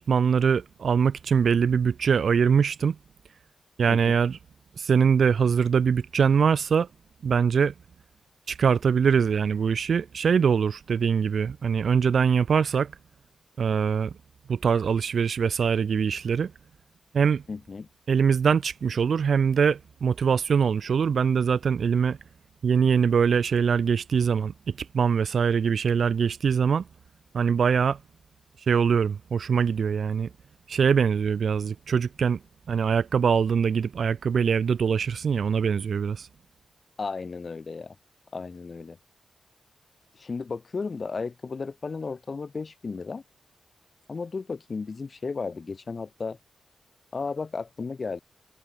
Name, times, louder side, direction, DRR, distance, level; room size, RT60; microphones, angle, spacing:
voice 1, 0.0-3.0 3.8-4.4 4.8-6.9 7.2-7.7 8.5-12.9 13.6-14.1 14.5-16.5 17.1-17.4 18.1-22.2 22.6-26.8 27.3-28.0 28.7-30.3 30.7-32.4 32.7-36.3, right 6 dB, 60° right, 0.6 m, -23 dB
voice 2, 17.5-17.9 37.0-38.0 38.3-39.0 40.1-43.2 44.1-46.4 47.1-48.2, left 4 dB, 35° left, 1.1 m, -34 dB
wide cardioid pair, 145°, 0 cm